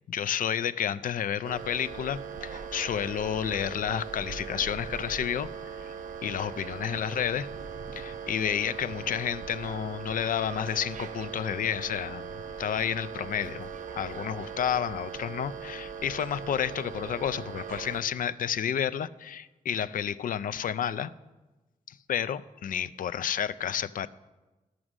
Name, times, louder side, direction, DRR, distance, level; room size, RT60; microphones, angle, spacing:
voice 1, 0.1-5.5 5.8-6.0 6.2-7.5 7.9-12.3 12.6-21.1 21.9-24.1, left 9 dB, 70° left, 15 dB, 0.4 m, -31 dB
sound 1, 1.4-18.0, right 6 dB, 65° right, 0.8 m, -40 dB
12.5 x 6.2 x 6.1 m, 1.1 s
wide cardioid pair, 115°, 14 cm